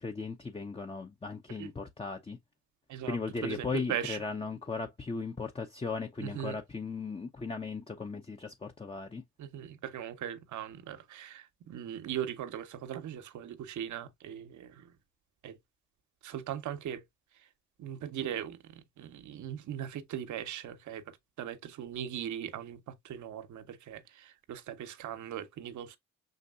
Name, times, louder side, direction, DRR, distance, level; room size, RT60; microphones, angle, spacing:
voice 1, 0.0-2.4 3.0-9.2, left 4 dB, 20° left, 0.7 m, -37 dB
voice 2, 2.9-4.2 6.2-6.6 9.4-14.9 15.4-15.6 16.2-17.0 17.3-17.5 17.8-26.0, right 10 dB, 70° right, 0.8 m, -39 dB
5.1 x 4.0 x 2.4 m
hypercardioid pair, 45°, 31 cm